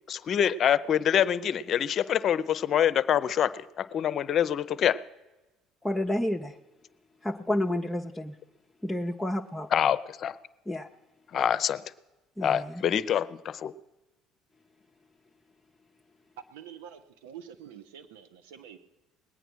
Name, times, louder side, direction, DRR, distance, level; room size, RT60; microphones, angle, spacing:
voice 1, 0.1-5.0 9.7-10.4 11.3-11.8 12.4-13.7, left 9 dB, 50° left, 15 dB, 0.6 m, -26 dB
voice 2, 5.8-6.6 7.2-8.4 8.8-9.7 10.7-10.9 12.4-12.8, left 1 dB, 5° left, 1 dB, 0.7 m, -30 dB
voice 3, 16.5-18.8, right 9 dB, 75° right, 9 dB, 1.0 m, -47 dB
20.0 x 9.1 x 6.2 m, 1.1 s
hypercardioid pair, 60°, 0 cm